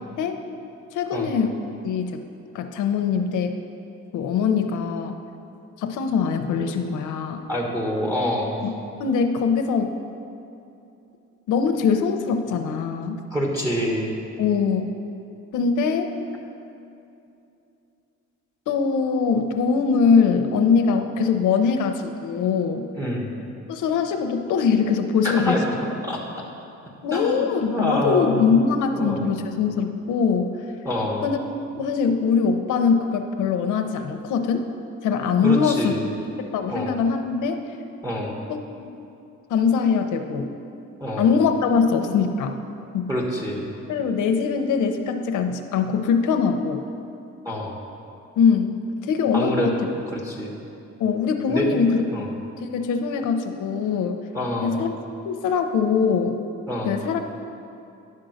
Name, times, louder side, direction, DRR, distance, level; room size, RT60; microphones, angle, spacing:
voice 1, 0.9-2.2 2.5-3.5 4.1-5.2 5.8-7.4 8.6-8.7 9.0-9.9 11.5-13.2 14.4-14.9 15.5-16.1 18.7-22.9 23.7-25.6 27.0-30.5 31.2-31.4 31.7-34.6 35.0-35.9 36.5-37.6 38.5-38.6 39.5-40.5 41.2-42.6 42.9-43.1 43.9-46.8 48.4-49.7 51.0-52.0 52.6-54.2 54.6-54.9 55.2-56.4 56.8-57.2, left 6 dB, 80° left, 5 dB, 0.7 m, -22 dB
voice 2, 7.5-8.6 13.3-14.1 23.0-23.3 25.2-25.7 26.0-26.2 27.1-28.5 28.9-29.2 30.8-31.3 35.4-36.2 36.7-37.0 38.0-38.4 41.0-41.3 43.1-43.7 47.4-47.8 49.3-49.9 50.1-50.6 51.5-51.8 52.1-52.3 54.3-54.8 56.7-57.0, equal, 10° right, -3 dB, 1.3 m, -26 dB
10.5 x 3.8 x 6.3 m, 2.7 s
cardioid pair, 90°, 30 cm